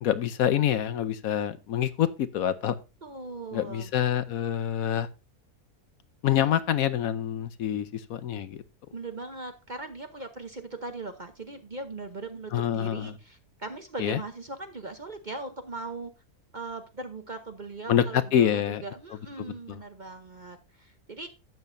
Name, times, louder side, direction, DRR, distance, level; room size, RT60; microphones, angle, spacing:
voice 1, 0.0-2.7 3.5-5.1 6.2-8.6 12.5-13.2 14.0-14.2 17.9-18.8 19.7-19.8, left 10 dB, 70° left, 1.1 m, -26 dB
voice 2, 3.0-3.9 8.9-16.1 16.5-21.3, right 3 dB, 35° right, 0.8 m, -39 dB
12.0 x 8.7 x 2.6 m
omnidirectional pair, 1.7 m